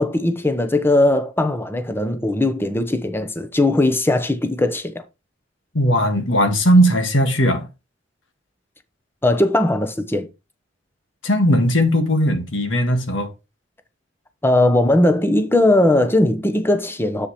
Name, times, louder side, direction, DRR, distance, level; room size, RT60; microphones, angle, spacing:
voice 1, 0.0-5.0 9.2-10.3 14.4-17.3, left 1 dB, 10° left, 0.9 m, -19 dB
voice 2, 5.7-7.7 11.2-13.3, equal, 90° left, 1.7 m, -18 dB
7.5 x 7.2 x 3.2 m
head